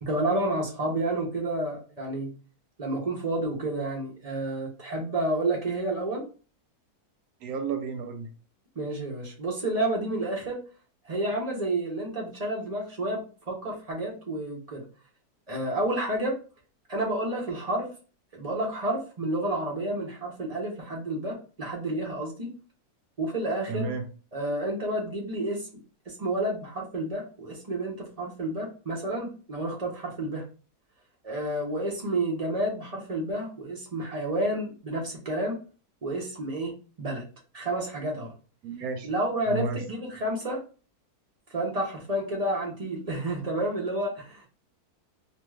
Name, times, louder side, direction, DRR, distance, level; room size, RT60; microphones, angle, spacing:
voice 1, 0.0-2.3 2.8-6.3 8.8-10.6 11.0-14.8 15.5-16.4 16.9-17.9 18.3-22.5 23.2-23.9 24.3-25.7 26.1-30.4 31.2-35.6 36.0-37.2 37.5-38.3 39.0-40.6 41.5-44.4, right 1 dB, 45° right, -2 dB, 0.4 m, -30 dB
voice 2, 7.4-8.3 23.7-24.0 38.6-39.1 39.5-39.8, right 5 dB, 75° right, 5 dB, 1.0 m, -31 dB
2.6 x 2.3 x 3.1 m, 0.37 s
omnidirectional pair, 1.6 m